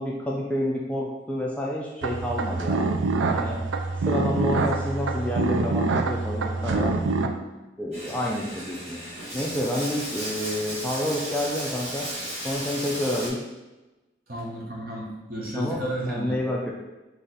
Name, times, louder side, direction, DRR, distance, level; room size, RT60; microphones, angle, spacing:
voice 1, 0.0-2.9 3.3-3.6 4.0-7.0 7.8-9.0 9.3-12.1 12.4-13.4 15.5-15.8 16.1-16.7, left 1 dB, 5° left, -3 dB, 0.4 m, -29 dB
sound 1, 2.0-7.3, right 3 dB, 85° right, 0.4 m, -25 dB
Bathtub (filling or washing), 7.9-13.3, equal, 35° right, 1.3 m, -35 dB
voice 2, 14.3-16.3, right 1 dB, 50° right, -3 dB, 1.1 m, -32 dB
4.0 x 3.2 x 4.0 m, 1.1 s
head